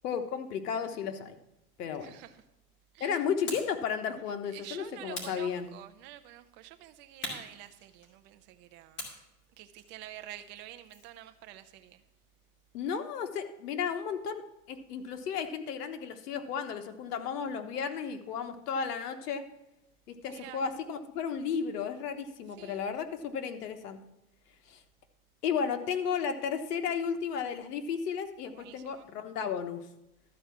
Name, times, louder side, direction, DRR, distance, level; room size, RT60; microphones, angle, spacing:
voice 1, 0.0-1.3 1.8-2.2 3.0-5.7 12.7-14.4 14.7-19.4 20.1-24.0 24.7-24.8 25.4-29.8, left 7 dB, 80° left, 8 dB, 1.3 m, -33 dB
voice 2, 2.0-2.4 2.9-3.2 4.5-9.1 9.6-12.0 20.3-20.6 22.6-22.8 28.5-29.1, right 13 dB, 25° right, 10 dB, 0.5 m, -48 dB
sound 1, 3.5-3.8 5.1-6.1 7.2-8.3 9.0-11.2, left 1 dB, 25° left, 2.3 m, -43 dB
12.5 x 4.7 x 7.2 m, 0.88 s
supercardioid pair, 145°, 46 cm